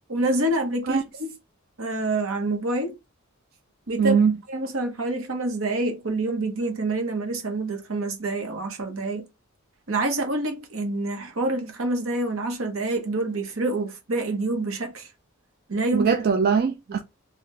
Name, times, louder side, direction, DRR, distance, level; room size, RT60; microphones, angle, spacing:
voice 1, 0.1-1.3 1.8-3.0 3.9-4.2 4.5-9.2 9.9-15.1 15.7-16.1 16.9-17.0, right 2 dB, 75° right, 1.0 m, -27 dB
voice 2, 4.0-4.4 15.9-17.0, right 6 dB, 45° right, 0.3 m, -21 dB
3.9 x 2.4 x 3.2 m
head